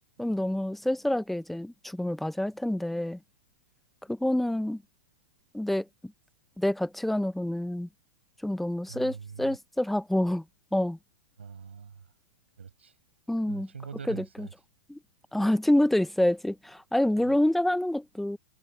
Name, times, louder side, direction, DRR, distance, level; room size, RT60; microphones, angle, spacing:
voice 1, 0.2-3.2 4.1-4.8 5.5-5.9 6.6-7.9 8.4-10.4 10.7-11.0 13.3-13.7 14.1-14.5 14.9-15.0 15.3-18.4, left 1 dB, ahead, 0.7 m, -27 dB
voice 2, 8.9-9.6 11.4-12.0 12.6-12.9 13.5-14.5 15.4-15.5, right 6 dB, 80° right, 7.4 m, -43 dB
figure-of-eight pair, 100°, 6 cm